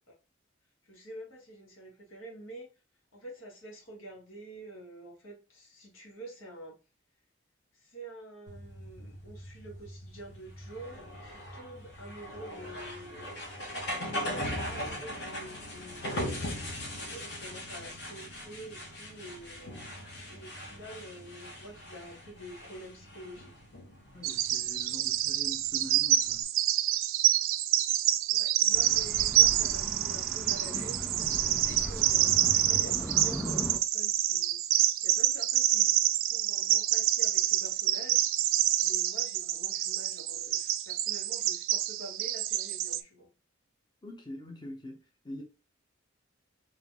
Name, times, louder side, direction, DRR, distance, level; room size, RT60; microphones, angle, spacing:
voice 1, 0.9-2.7 3.1-6.8 7.7-13.5 13.8-16.5 16.9-19.7 20.3-23.6 28.3-34.6 35.0-35.9 36.3-38.2 38.8-43.3, right 1 dB, 85° left, 1.7 m, -47 dB
sound 1, 8.5-26.4, left 1 dB, 55° left, 1.5 m, -40 dB
voice 2, 24.1-26.5 44.0-45.4, left 1 dB, 20° left, 0.7 m, -44 dB
Bird vocalization bird call bird song, 24.2-43.0, right 13 dB, 80° right, 0.4 m, -27 dB
sound 2, 28.7-33.8, equal, 5° right, 0.4 m, -38 dB
3.6 x 2.9 x 3.5 m
head